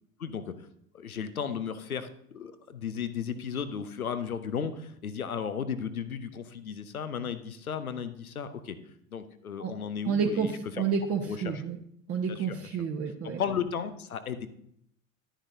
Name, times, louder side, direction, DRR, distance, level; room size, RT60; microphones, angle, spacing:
voice 1, 0.2-0.7 0.9-8.8 9.1-10.9 11.2-11.6 12.3-12.8 13.4-14.5, left 7 dB, 90° left, 11 dB, 0.8 m, -35 dB
voice 2, 10.1-11.8 12.1-13.4, right 6 dB, 35° right, 2 dB, 1.1 m, -30 dB
11.5 x 10.0 x 2.7 m, 0.71 s
figure-of-eight pair, 70°, 42 cm